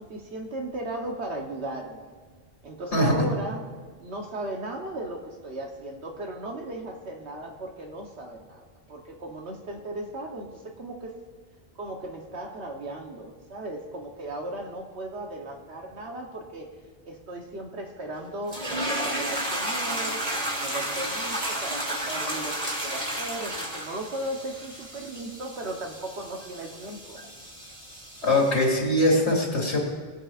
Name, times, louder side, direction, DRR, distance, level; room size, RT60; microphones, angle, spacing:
voice 1, 0.0-2.1 2.6-3.7 4.0-11.1 11.8-16.7 17.0-18.7 19.0-27.2 28.2-28.4, right 1 dB, 80° right, 1 dB, 1.4 m, -36 dB
sound 1, 18.5-28.7, right 1 dB, 35° right, 2.6 m, -32 dB
voice 2, 28.2-29.8, left 1 dB, 80° left, -4 dB, 2.6 m, -22 dB
20.0 x 8.1 x 2.5 m, 1.5 s
omnidirectional pair, 1.1 m